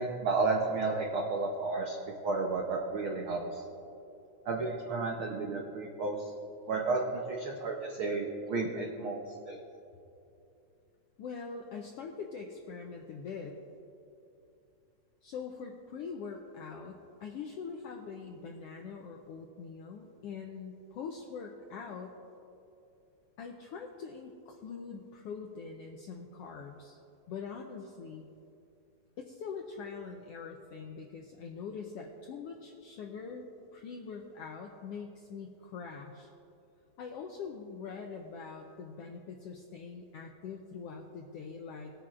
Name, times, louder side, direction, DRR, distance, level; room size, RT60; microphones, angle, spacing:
voice 1, 0.0-2.0 2.2-3.6 4.5-6.3 6.7-9.2 9.5-9.6, right 3 dB, 85° right, 0 dB, 1.1 m, -32 dB
voice 2, 11.2-13.6 15.2-22.1 23.4-27.0 27.3-28.3 29.2-33.4 33.7-36.3 37.0-41.9, left 5 dB, 85° left, 2 dB, 1.3 m, -43 dB
21.5 x 8.7 x 2.4 m, 2.7 s
omnidirectional pair, 3.4 m